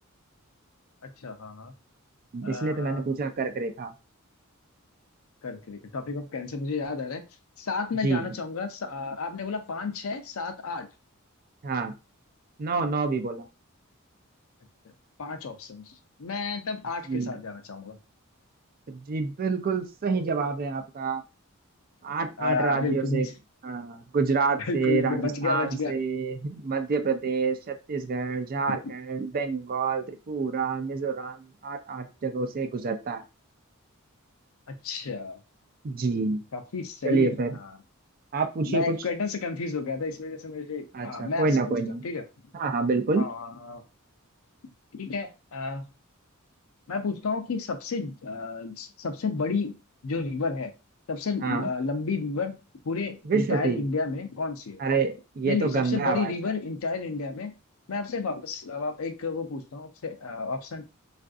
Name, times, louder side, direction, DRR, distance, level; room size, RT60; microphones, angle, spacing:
voice 1, 1.0-1.7 2.4-3.0 5.4-7.2 7.6-10.9 14.8-14.9 15.2-18.0 22.4-23.3 24.6-26.0 28.7-28.9 34.7-35.4 36.5-37.7 38.6-41.8 42.0-42.2 43.1-43.8 44.9-45.9 46.9-50.7 51.1-54.8 55.5-57.5 57.9-60.8, left 4 dB, 70° left, 7 dB, 0.5 m, -31 dB
voice 2, 2.3-3.9 8.0-8.3 11.6-11.9 12.6-13.5 17.1-17.4 18.9-21.2 22.0-23.3 23.6-33.2 35.8-36.4 37.0-37.5 38.3-39.0 40.9-42.0 42.5-43.3 51.4-51.7 53.3-53.8 54.8-56.3, right 4 dB, 45° right, 6 dB, 0.4 m, -27 dB
3.4 x 2.5 x 2.4 m, 0.29 s
head